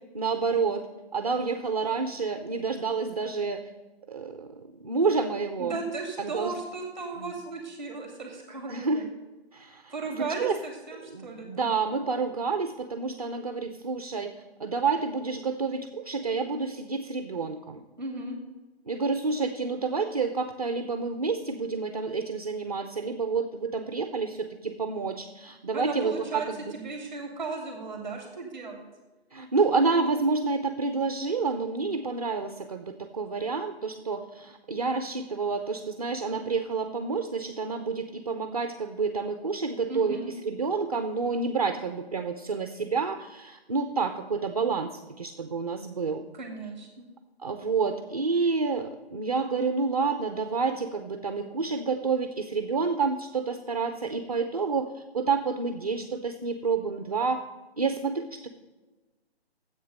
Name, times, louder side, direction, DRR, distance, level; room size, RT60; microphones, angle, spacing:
voice 1, 0.1-0.9 1.1-3.6 4.1-5.8 6.2-6.5 7.2-7.3 8.7-9.0 9.5-10.6 11.1-14.3 14.6-17.8 18.9-26.7 29.3-46.2 47.4-57.4 57.8-58.5, right 4 dB, 35° right, 8 dB, 0.6 m, -29 dB
voice 2, 5.6-9.1 9.9-11.7 18.0-18.4 25.7-26.5 26.7-28.9 39.9-40.3 46.3-47.0, right 3 dB, ahead, 2 dB, 2.3 m, -36 dB
10.5 x 8.0 x 6.6 m, 1.2 s
hypercardioid pair, 170°, 32 cm